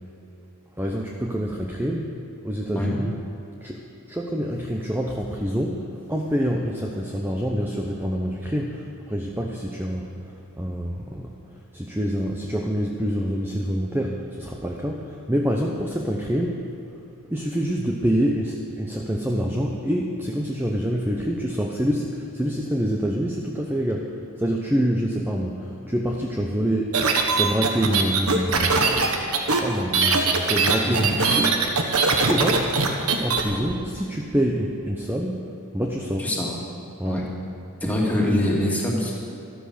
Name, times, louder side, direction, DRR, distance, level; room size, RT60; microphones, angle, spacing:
voice 1, 0.8-2.1 2.4-3.2 3.6-3.8 4.1-10.1 10.6-11.3 11.7-16.6 17.2-24.1 24.4-27.0 27.3-29.2 29.5-31.5 32.2-32.7 33.2-35.4 35.7-36.3 37.0-37.3, equal, 10° right, 0 dB, 0.9 m, -26 dB
sound 1, 26.9-33.4, right 4 dB, 80° right, 1.5 m, -21 dB
voice 2, 30.8-31.4 36.2-36.5 37.0-37.2 37.8-39.1, left 1 dB, 5° left, -3 dB, 2.5 m, -24 dB
13.0 x 13.0 x 6.7 m, 2.8 s
head